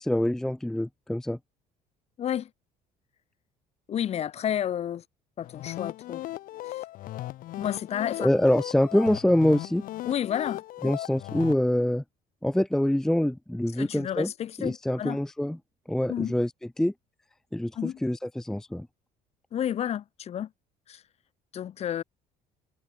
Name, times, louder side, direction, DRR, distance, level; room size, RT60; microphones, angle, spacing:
voice 1, 0.0-1.4 8.2-9.8 10.8-12.0 12.4-14.3 14.6-15.6 15.9-16.5 16.8-16.9 17.5-18.9, left 1 dB, 5° left, 0.6 m, -25 dB
voice 2, 2.2-2.5 3.9-5.0 5.4-6.2 7.6-8.3 10.0-10.6 13.8-15.2 16.1-16.3 17.7-18.0 19.5-20.5 20.9-21.0 21.5-22.0, left 10 dB, 45° left, 1.5 m, -31 dB
sound 1, 5.4-11.6, left 15 dB, 65° left, 1.9 m, -37 dB
cardioid pair, 130°, 16 cm